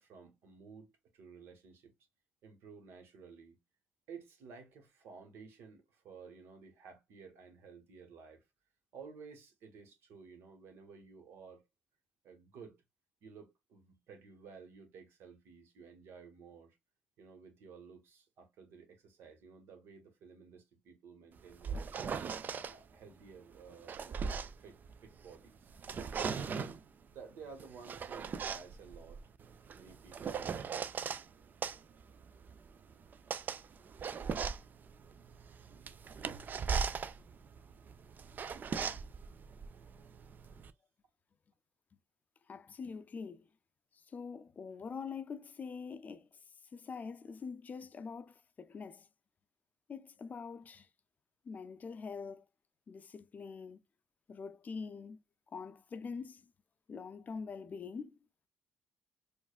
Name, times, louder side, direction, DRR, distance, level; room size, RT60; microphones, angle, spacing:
voice 1, 0.0-1.9 2.4-3.5 4.1-8.4 8.9-11.6 12.2-12.8 13.2-16.8 17.2-21.8 22.4-23.9 24.3-25.7 26.2-26.7 27.1-29.2 29.7-30.6 36.1-36.3, right 5 dB, 75° right, 1.4 m, -54 dB
sound 1, 21.4-22.7 23.6-25.4 25.7-26.8 27.6-31.2 31.6-40.7, right 6 dB, 50° right, 0.4 m, -39 dB
voice 2, 42.5-43.5 44.1-46.3 46.7-49.1 49.9-50.9 51.4-52.4 52.9-53.8 54.3-55.2 55.5-56.5 56.9-58.2, left 5 dB, 40° left, 0.4 m, -44 dB
4.7 x 2.5 x 2.4 m
supercardioid pair, 70°, 4 cm